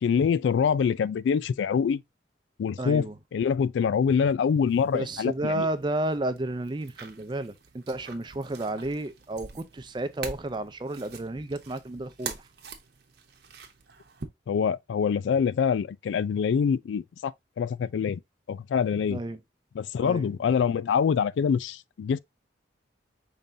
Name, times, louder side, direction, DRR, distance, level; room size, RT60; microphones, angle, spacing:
voice 1, 0.0-2.0 2.6-5.7 14.5-18.2 18.5-19.2 19.8-22.2, left 6 dB, 85° left, 0.3 m, -25 dB
voice 2, 2.8-3.2 4.9-12.5 19.1-19.4 20.0-20.3, right 2 dB, 25° right, 0.5 m, -32 dB
sound 1, 4.7-14.2, right 5 dB, 60° right, 0.9 m, -45 dB
5.3 x 3.8 x 2.6 m
head